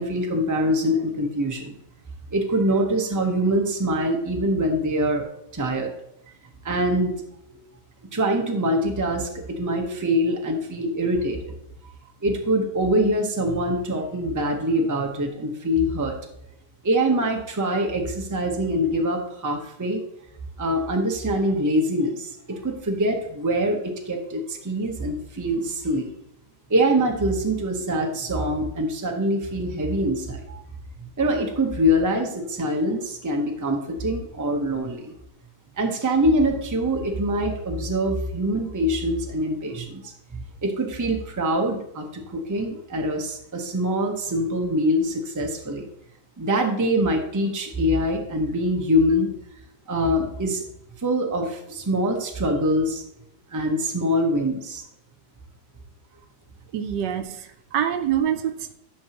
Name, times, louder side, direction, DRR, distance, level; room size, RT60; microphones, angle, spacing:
voice 1, 0.0-1.7 2.3-5.2 5.5-5.9 6.6-7.2 7.4-7.6 8.1-11.5 12.2-16.1 16.8-20.0 20.6-26.1 26.7-30.6 31.0-35.1 35.8-45.8 46.4-49.3 49.9-50.6 51.0-53.0 53.5-54.8, equal, 15° right, 2 dB, 0.7 m, -24 dB
voice 2, 56.7-58.7, right 9 dB, 80° right, 8 dB, 1.3 m, -26 dB
11.0 x 5.9 x 2.9 m, 0.80 s
omnidirectional pair, 1.9 m